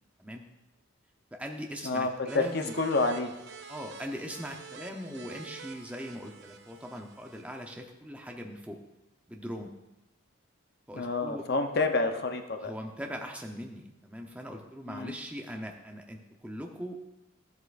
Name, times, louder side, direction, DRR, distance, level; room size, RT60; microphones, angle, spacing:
voice 1, 1.3-2.8 3.7-8.8 9.3-9.7 10.9-11.5 12.6-17.0, equal, 5° right, 2 dB, 0.8 m, -40 dB
voice 2, 2.3-3.3 10.9-12.7 14.9-15.1, left 3 dB, 50° left, 5 dB, 0.8 m, -28 dB
sound 1, 2.3-7.7, right 5 dB, 55° right, 0.6 m, -48 dB
13.0 x 8.1 x 2.5 m, 0.96 s
head